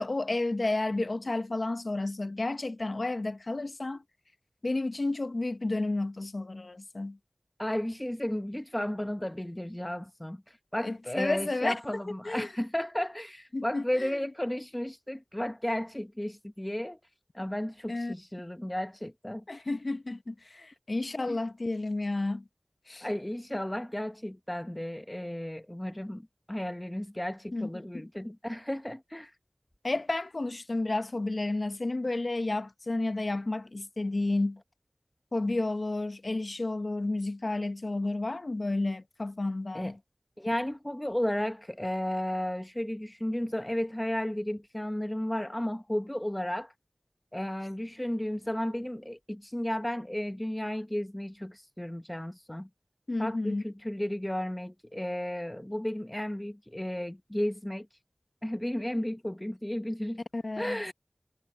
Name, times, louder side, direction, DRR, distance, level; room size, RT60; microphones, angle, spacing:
voice 1, 0.0-4.0 4.6-7.2 10.8-12.5 13.5-14.1 17.9-18.1 19.5-22.4 22.9-23.1 27.5-28.1 29.8-34.6 35.3-40.0 53.1-53.6 60.3-60.8, left 2 dB, 75° left, 0.7 m, -31 dB
voice 2, 7.6-17.0 17.3-19.4 21.3-21.4 23.0-29.3 39.7-39.9 40.4-46.7 47.3-52.7 53.2-57.9 58.4-60.2 60.6-60.9, left 1 dB, 20° left, 0.8 m, -33 dB
wide cardioid pair, 40°, 0 cm